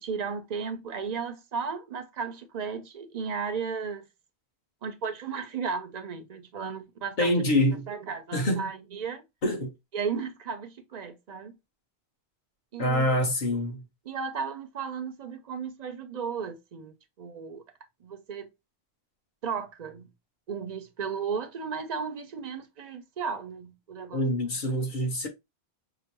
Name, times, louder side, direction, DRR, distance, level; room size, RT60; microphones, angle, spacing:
voice 1, 0.0-4.0 4.8-9.2 9.9-11.6 12.7-13.2 14.1-17.6 18.0-18.5 19.4-20.1 20.5-24.2, right 6 dB, 55° right, 0.5 m, -35 dB
voice 2, 7.2-7.9 8.3-8.7 9.4-9.7 12.8-13.8 24.1-25.3, left 1 dB, 50° left, 1.1 m, -25 dB
4.7 x 2.1 x 2.9 m
omnidirectional pair, 1.1 m